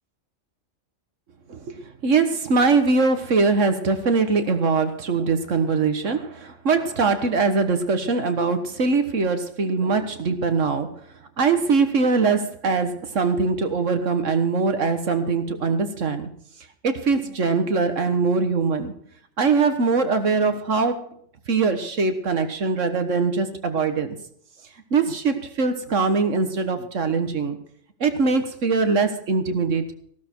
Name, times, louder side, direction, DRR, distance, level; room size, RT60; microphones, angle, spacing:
voice 1, 1.5-10.9 11.4-16.3 16.8-18.9 19.4-21.1 21.5-24.2 24.9-27.6 28.0-29.9, right 4 dB, 70° right, 8 dB, 1.7 m, -22 dB
15.0 x 12.5 x 4.5 m, 0.63 s
omnidirectional pair, 1.3 m